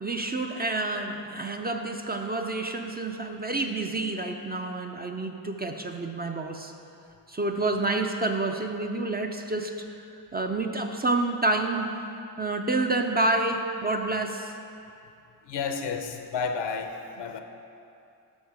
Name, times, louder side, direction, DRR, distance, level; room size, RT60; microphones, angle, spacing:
voice 1, 0.0-6.7 7.3-9.9 10.1-11.9 12.4-14.5, right 2 dB, 20° right, 3 dB, 0.5 m, -28 dB
voice 2, 15.4-17.4, left 5 dB, 65° left, 6 dB, 0.7 m, -31 dB
6.3 x 6.3 x 4.7 m, 2.6 s
cardioid pair, 60°, 45 cm